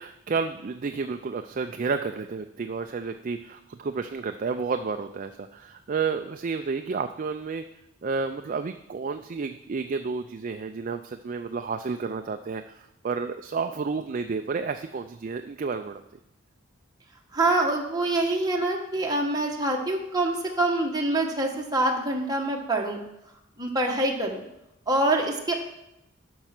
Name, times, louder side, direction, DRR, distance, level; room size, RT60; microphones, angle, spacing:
voice 1, 0.0-7.6 8.0-16.0, right 4 dB, 40° right, 7 dB, 0.4 m, -31 dB
voice 2, 17.3-23.0 23.6-24.4 24.9-25.5, right 2 dB, 20° right, 0 dB, 1.4 m, -25 dB
12.0 x 5.5 x 5.9 m, 0.85 s
head